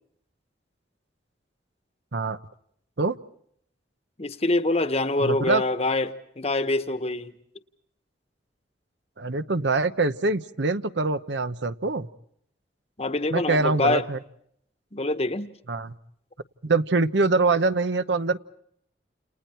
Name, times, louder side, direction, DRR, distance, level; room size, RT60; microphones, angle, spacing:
voice 1, 4.2-7.3 13.0-14.1 14.9-15.5, left 2 dB, 35° left, 11 dB, 1.2 m, -25 dB
voice 2, 5.2-5.6 9.2-12.1 13.3-14.2 15.7-15.9 16.6-18.4, right 3 dB, 75° right, 12 dB, 0.9 m, -24 dB
29.5 x 29.0 x 4.4 m, 0.70 s
head